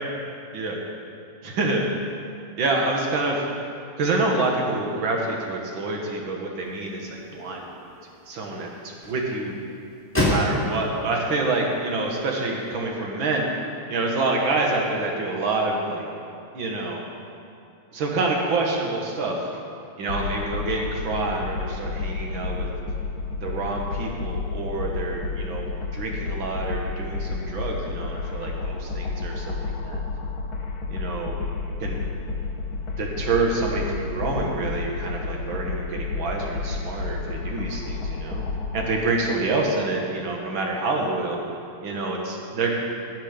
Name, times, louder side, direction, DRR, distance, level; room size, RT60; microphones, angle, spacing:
voice 1, 1.4-1.9 2.6-3.5 4.0-7.8 8.3-8.7 9.1-9.6 10.2-13.5 13.9-16.1 16.5-17.0 17.9-19.6 20.0-22.7 23.4-25.7 25.9-30.0 30.9-31.4 31.8-32.0 33.0-38.4 38.7-41.4 41.8-42.7, right 3 dB, 65° right, 0 dB, 2.2 m, -27 dB
sound 1, 6.6-12.8, left 1 dB, 5° left, 2.6 m, -31 dB
sound 2, 20.1-38.9, left 4 dB, 65° left, 1.8 m, -31 dB
17.0 x 6.5 x 5.1 m, 2.7 s
omnidirectional pair, 2.4 m